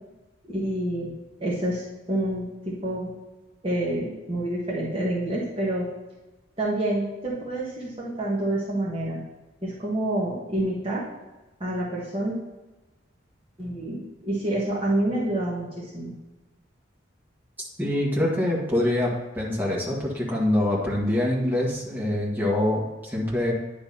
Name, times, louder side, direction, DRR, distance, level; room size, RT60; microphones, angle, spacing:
voice 1, 0.5-1.1 1.4-3.1 3.6-5.9 6.6-9.2 9.6-11.0 11.6-12.3 13.6-16.1, right 1 dB, 30° right, -6 dB, 1.4 m, -28 dB
voice 2, 17.8-23.5, left 1 dB, 10° right, -5 dB, 1.8 m, -25 dB
10.0 x 3.5 x 5.5 m, 1.1 s
head